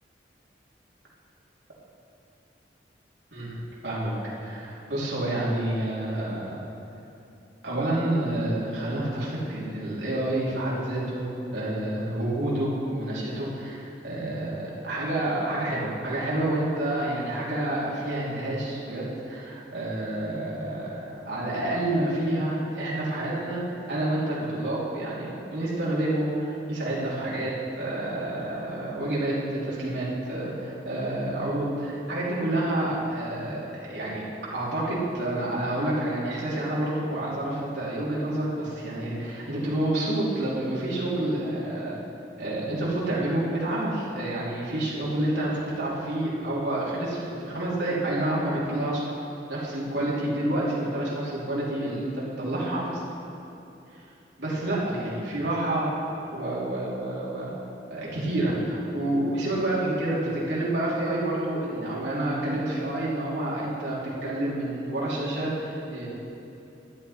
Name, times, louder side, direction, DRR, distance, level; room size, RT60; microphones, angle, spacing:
voice 1, 3.3-4.1 4.4-6.6 7.6-23.6 23.9-34.2 34.5-42.0 42.4-49.0 49.5-53.0 53.9-54.0 54.4-55.9 56.3-57.5 57.9-66.1, right 1 dB, 80° right, -7 dB, 2.9 m, -28 dB
12.5 x 9.7 x 4.2 m, 2.8 s
head